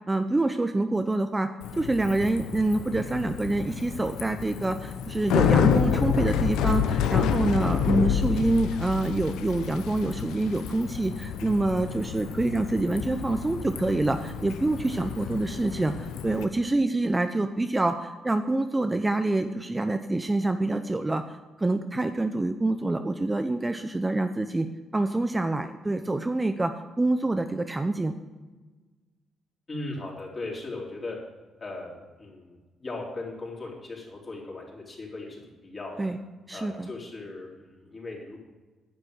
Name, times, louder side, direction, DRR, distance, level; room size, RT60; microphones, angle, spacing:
voice 1, 0.1-1.5 1.8-21.2 21.6-24.7 24.9-26.7 27.0-28.2 36.0-36.2 36.5-36.9, right 2 dB, 15° right, 8 dB, 0.6 m, -26 dB
Bicycle, 1.6-16.4, left 8 dB, 90° left, 0.8 m, -29 dB
voice 2, 29.7-31.2 31.6-36.1 36.5-38.4, left 2 dB, 35° left, -2 dB, 4.0 m, -38 dB
10.5 x 7.5 x 6.4 m, 1.3 s
cardioid pair, 90°, 0 cm